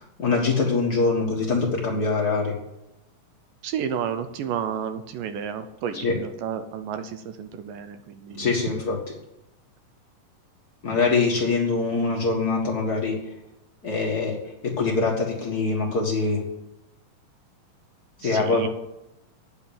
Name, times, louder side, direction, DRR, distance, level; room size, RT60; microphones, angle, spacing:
voice 1, 0.2-2.5 5.9-6.1 8.3-9.0 10.8-13.2 13.8-14.4 14.6-16.4 18.2-18.7, left 4 dB, 50° left, -2 dB, 1.1 m, -23 dB
voice 2, 3.6-8.5 18.2-18.7, right 8 dB, 75° right, 9 dB, 2.2 m, -31 dB
9.7 x 7.1 x 9.0 m, 0.89 s
omnidirectional pair, 4.2 m